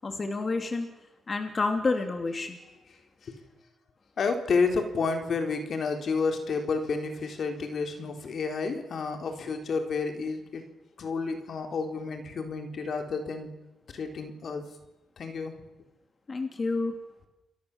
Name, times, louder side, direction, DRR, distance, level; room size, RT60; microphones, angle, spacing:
voice 1, 0.0-0.9 1.3-2.6 16.3-16.9, left 3 dB, 35° left, 5 dB, 3.0 m, -29 dB
voice 2, 4.2-10.6 11.0-13.5 13.9-14.6 15.2-15.5, left 4 dB, 60° left, 5 dB, 4.0 m, -30 dB
29.5 x 22.5 x 7.4 m, 1.0 s
cardioid pair, 95°, 0 cm